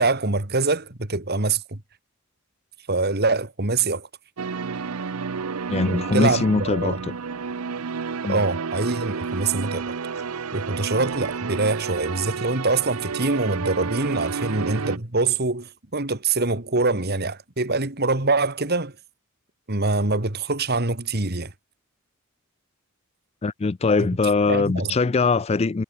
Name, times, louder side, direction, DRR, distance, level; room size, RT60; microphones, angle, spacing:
voice 1, 0.0-1.8 2.9-4.1 5.9-7.0 8.3-9.8 10.5-18.9 19.7-21.5 24.5-24.9, right 3 dB, 50° right, 2.3 m, -24 dB
sound 1, 4.4-15.0, right 5 dB, 85° right, 0.7 m, -30 dB
voice 2, 5.7-7.1 8.2-8.4 23.4-25.8, left 4 dB, 30° left, 0.4 m, -22 dB
head